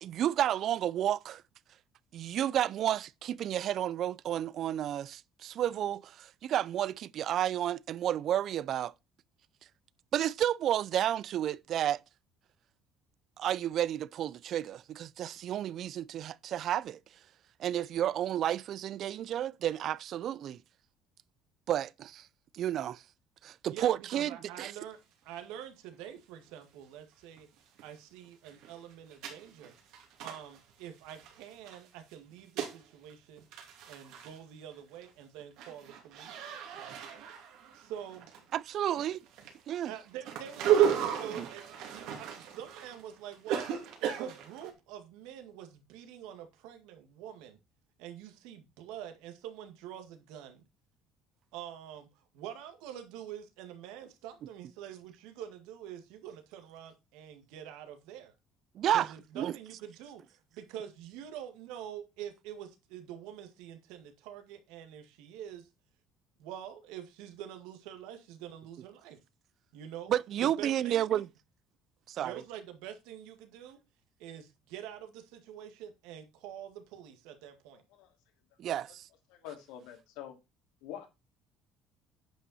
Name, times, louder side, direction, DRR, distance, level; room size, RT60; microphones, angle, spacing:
voice 1, 0.0-1.4 2.1-8.9 10.1-12.0 13.4-17.0 17.6-20.6 21.7-22.3 22.5-23.0 23.4-24.7 38.5-39.2 39.7-39.9 41.4-41.5 58.8-59.1 59.4-59.5 70.1-71.3 72.1-72.4 78.6-79.1, right 11 dB, 45° right, 0.4 m, -31 dB
voice 2, 23.7-25.0 25.2-27.5 27.8-29.7 30.2-33.5 33.9-36.4 36.7-37.0 37.7-38.3 39.9-41.6 41.9-43.7 44.0-47.6 48.0-50.6 51.5-52.1 52.3-58.3 58.9-65.7 66.4-69.2 69.7-70.1 70.4-71.2 72.2-73.8 74.2-77.8, right 10 dB, 90° right, 1.8 m, -46 dB
sound 1, 25.4-25.5 25.9-26.0 27.4-27.5 27.8-27.9 28.3-31.8 32.1-32.8 33.1-33.2 33.4-34.4 34.8-35.1 35.4-38.7 38.9-44.7, right 9 dB, 70° right, 2.6 m, -34 dB
voice 3, 77.7-78.2 79.3-80.4 80.8-81.1, left 10 dB, 90° left, 2.6 m, -46 dB
10.0 x 5.6 x 4.2 m
cardioid pair, 150°, 0 cm